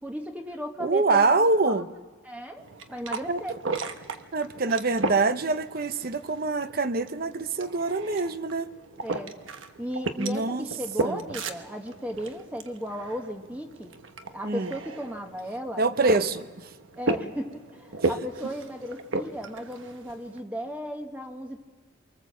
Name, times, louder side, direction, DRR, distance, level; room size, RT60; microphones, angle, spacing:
voice 1, 0.0-1.8 2.2-3.5 9.0-9.3 9.8-13.9 14.3-15.8 17.0-21.6, equal, 5° right, 3 dB, 1.1 m, -35 dB
voice 2, 0.8-1.9 3.3-3.4 4.3-8.7 10.2-10.7 11.0-11.2 14.4-14.7 15.8-16.7 18.0-18.1, right 3 dB, 45° right, 12 dB, 0.8 m, -25 dB
sound 1, 2.6-20.4, right 3 dB, 75° right, 1.1 m, -35 dB
24.5 x 24.0 x 7.4 m, 1.4 s
head